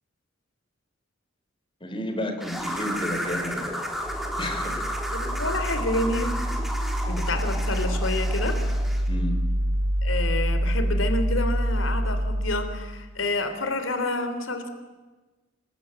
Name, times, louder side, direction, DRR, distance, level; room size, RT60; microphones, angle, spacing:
voice 1, 1.8-3.7 4.4-4.8 9.1-9.3, left 1 dB, 25° left, 5 dB, 4.0 m, -31 dB
sound 1, 2.4-9.1, equal, ahead, 3.9 m, -33 dB
sound 2, 4.0-13.1, equal, 75° right, 2.6 m, -26 dB
voice 2, 5.1-6.4 7.0-8.6 10.0-14.7, left 2 dB, 90° left, 9 dB, 3.4 m, -29 dB
27.5 x 21.5 x 9.1 m, 1.2 s
head